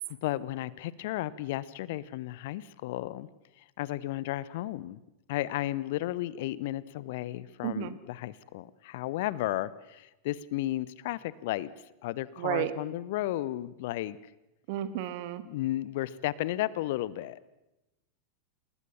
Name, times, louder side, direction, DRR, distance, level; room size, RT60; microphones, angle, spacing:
voice 1, 0.2-3.3 3.6-5.0 5.3-11.7 12.0-14.2 15.4-17.4, left 15 dB, 50° left, 20 dB, 0.9 m, -33 dB
voice 2, 7.6-7.9 12.4-12.7 14.7-15.4, right 13 dB, 50° right, 12 dB, 1.8 m, -32 dB
28.0 x 20.5 x 7.1 m, 0.96 s
figure-of-eight pair, 90°, 0 cm